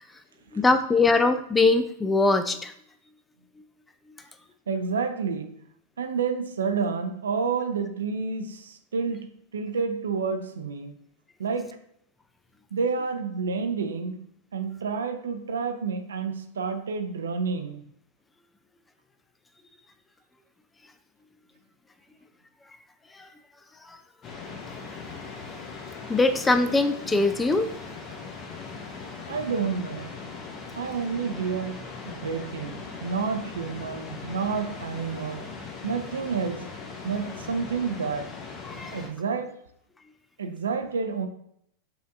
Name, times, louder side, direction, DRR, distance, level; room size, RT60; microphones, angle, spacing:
voice 1, 0.5-2.7 23.1-23.3 23.9-24.0 26.1-27.7 38.6-39.0, left 3 dB, 15° left, 0.4 m, -22 dB
voice 2, 4.7-5.6 6.0-10.9 11.4-11.8 12.7-17.8 29.3-30.2 30.8-35.5 35.8-36.7 37.0-38.4 38.9-39.6 40.4-41.3, right 5 dB, 70° right, 0.5 m, -29 dB
sound 1, 24.2-39.1, left 4 dB, 30° left, 0.8 m, -40 dB
6.7 x 2.6 x 2.5 m
figure-of-eight pair, 90°, 0 cm